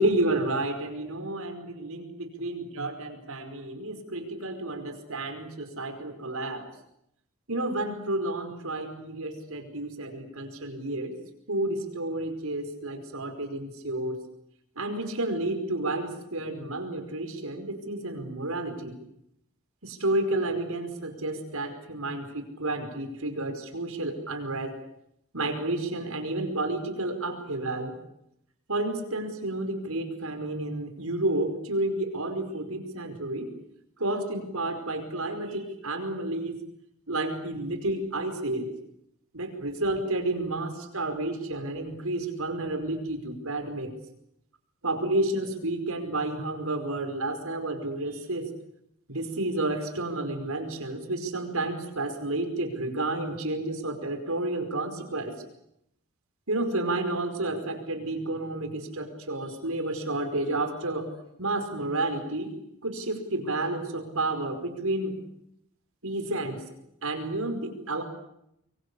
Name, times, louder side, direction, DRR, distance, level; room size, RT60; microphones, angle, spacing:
voice 1, 0.0-6.7 7.5-11.1 11.5-14.2 14.7-19.0 19.8-24.8 25.3-27.9 28.7-33.5 34.0-36.6 37.1-38.7 39.3-43.9 44.8-48.5 49.1-55.3 56.5-61.1 61.4-62.5 62.8-65.2 66.0-66.6 67.0-68.0, right 2 dB, 80° right, 7 dB, 5.1 m, -31 dB
25.0 x 23.0 x 8.5 m, 0.77 s
head